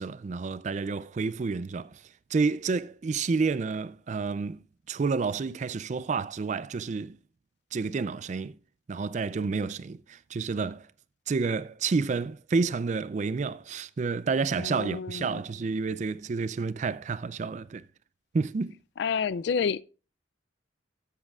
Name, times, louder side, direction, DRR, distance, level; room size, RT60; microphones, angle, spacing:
voice 1, 0.0-2.0 2.3-7.2 7.7-8.6 8.9-10.9 11.3-17.8 18.3-18.8, right 4 dB, 35° right, 0.3 m, -30 dB
voice 2, 14.6-15.4 19.0-19.8, left 6 dB, 60° left, 0.3 m, -29 dB
13.5 x 7.5 x 2.3 m
head